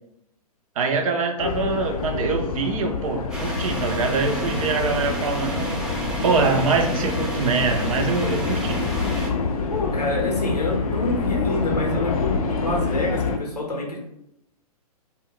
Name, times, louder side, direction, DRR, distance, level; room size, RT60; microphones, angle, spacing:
voice 1, 0.8-5.8 6.2-8.8, right 4 dB, 60° right, 5 dB, 0.5 m, -24 dB
sound 1, 1.4-13.4, left 4 dB, 65° left, 0.4 m, -27 dB
sound 2, 3.3-9.3, right 1 dB, 5° right, 0.4 m, -31 dB
voice 2, 9.7-14.0, left 2 dB, 85° left, 0 dB, 0.8 m, -27 dB
2.2 x 2.2 x 3.6 m, 0.79 s
figure-of-eight pair, 120°, 20 cm